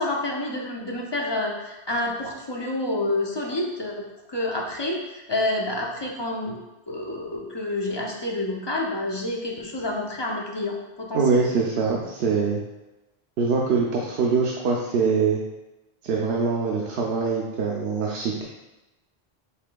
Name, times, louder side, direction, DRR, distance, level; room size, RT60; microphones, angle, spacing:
voice 1, 0.0-3.9 4.3-6.6 6.9-11.4, left 2 dB, 35° left, -2 dB, 0.5 m, -28 dB
voice 2, 11.1-12.6 13.4-15.4 16.0-18.4, right 5 dB, 80° right, -2 dB, 0.8 m, -23 dB
5.7 x 3.5 x 2.2 m, 1.0 s
omnidirectional pair, 1.1 m